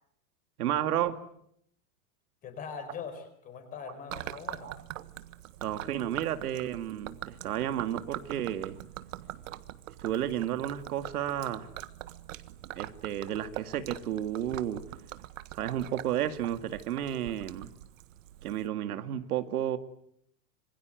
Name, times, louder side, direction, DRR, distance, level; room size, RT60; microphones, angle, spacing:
voice 1, 0.6-1.2 4.6-4.8 5.6-8.8 10.0-11.7 12.8-14.8 15.5-17.7 18.4-19.8, right 11 dB, 80° right, 2.2 m, -32 dB
voice 2, 2.4-4.7, left 6 dB, 20° left, 4.5 m, -42 dB
Gurgling / Liquid, 4.1-18.7, right 14 dB, 60° right, 1.6 m, -43 dB
26.5 x 23.5 x 9.2 m
supercardioid pair, 180°, 44 cm